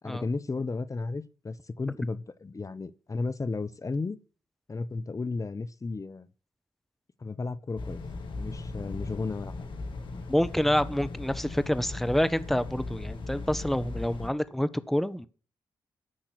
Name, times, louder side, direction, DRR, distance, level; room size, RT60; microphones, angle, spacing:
voice 1, 0.0-4.2 4.7-6.3 7.2-8.0 8.4-9.7, left 3 dB, 35° left, 1.1 m, -34 dB
sound 1, 7.8-14.3, left 3 dB, 60° left, 2.7 m, -38 dB
voice 2, 10.3-15.3, left 1 dB, ahead, 1.2 m, -27 dB
14.5 x 5.9 x 8.5 m
hypercardioid pair, 40°, 9 cm